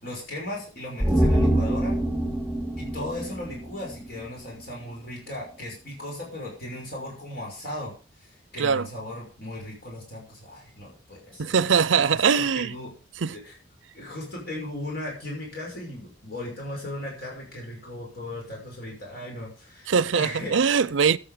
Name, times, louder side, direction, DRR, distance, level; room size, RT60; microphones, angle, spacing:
voice 1, 0.0-1.9 2.8-7.9 8.2-11.6 11.9-12.9 13.3-13.5 13.9-20.8, left 1 dB, 55° left, 6.0 m, -37 dB
sound 1, 1.0-4.4 4.7-4.8, right 1 dB, ahead, 2.1 m, -25 dB
voice 2, 8.6-8.9 11.4-12.7 13.2-13.4 19.9-21.2, right 6 dB, 85° right, 0.6 m, -22 dB
14.0 x 9.2 x 5.1 m
head